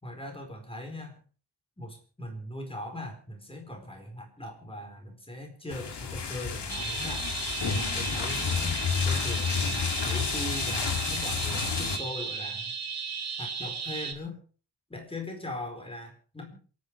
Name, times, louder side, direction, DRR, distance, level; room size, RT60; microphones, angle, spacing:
voice 1, 0.0-1.2 1.8-7.3 7.6-9.6 10.0-12.7 13.4-14.4 14.9-16.6, left 1 dB, 15° left, 4 dB, 4.4 m, -40 dB
sound 1, 5.7-12.0, left 6 dB, 80° left, 2.5 m, -30 dB
sound 2, 6.7-14.1, right 5 dB, 40° right, 2.5 m, -35 dB
27.5 x 9.6 x 4.8 m, 0.40 s
wide cardioid pair, 150°, 41 cm